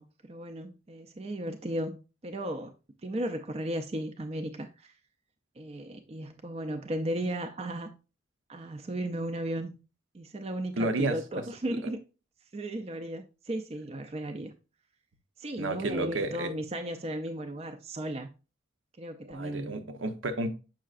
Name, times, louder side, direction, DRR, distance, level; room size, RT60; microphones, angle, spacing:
voice 1, 0.0-2.0 2.2-2.7 3.0-4.9 5.6-7.9 8.5-9.8 10.1-12.0 12.5-14.5 15.4-18.3 19.0-19.8, right 1 dB, 30° right, 0.4 m, -35 dB
voice 2, 10.7-11.2 15.6-16.5 19.3-20.5, right 2 dB, 70° right, 0.7 m, -31 dB
7.5 x 5.6 x 2.4 m
head